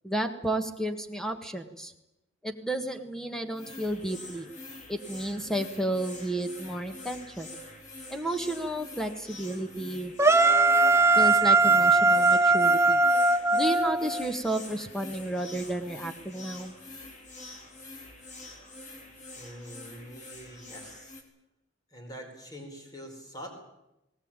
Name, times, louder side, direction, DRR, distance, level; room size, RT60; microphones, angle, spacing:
voice 1, 0.0-1.9 2.4-4.5 4.9-7.5 8.1-10.1 11.2-13.0 13.5-16.7, right 1 dB, 5° left, 7 dB, 1.6 m, -32 dB
sound 1, 3.5-21.2, left 2 dB, 40° left, 3.4 m, -45 dB
sound 2, 10.2-14.3, right 3 dB, 15° right, 0.8 m, -20 dB
voice 2, 19.3-21.2 21.9-23.5, equal, 20° left, 2 dB, 4.9 m, -44 dB
19.5 x 19.0 x 9.0 m, 0.92 s
head